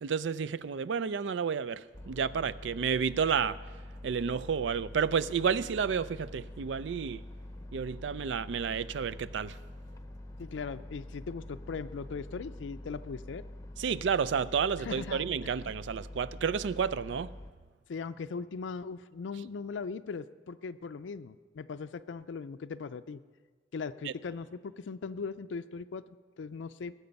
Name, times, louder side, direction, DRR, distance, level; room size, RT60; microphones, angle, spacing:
voice 1, 0.0-3.6 4.0-7.2 7.7-9.6 13.8-17.3, right 6 dB, 75° right, 0.4 m, -31 dB
sound 1, 1.9-17.5, left 1 dB, 20° left, 0.7 m, -45 dB
voice 2, 10.4-13.4 14.8-15.5 17.9-23.2 23.7-26.9, left 5 dB, 85° left, 0.4 m, -39 dB
20.0 x 8.0 x 5.3 m
head